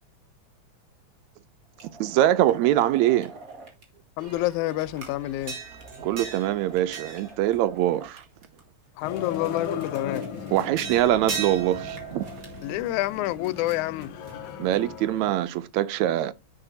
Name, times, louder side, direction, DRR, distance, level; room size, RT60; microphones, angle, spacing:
sound 1, 1.8-3.8 4.2-8.6 9.0-15.0, right 5 dB, 30° right, 2.1 m, -40 dB
voice 1, 2.0-3.3 6.0-8.2 10.5-12.3 14.6-16.3, right 13 dB, 80° right, 1.8 m, -23 dB
voice 2, 4.2-5.6 9.0-10.3 12.6-14.1, left 16 dB, 90° left, 2.0 m, -28 dB
sound 2, 9.0-15.3, left 6 dB, 75° left, 1.1 m, -38 dB
9.9 x 7.5 x 2.7 m
omnidirectional pair, 3.3 m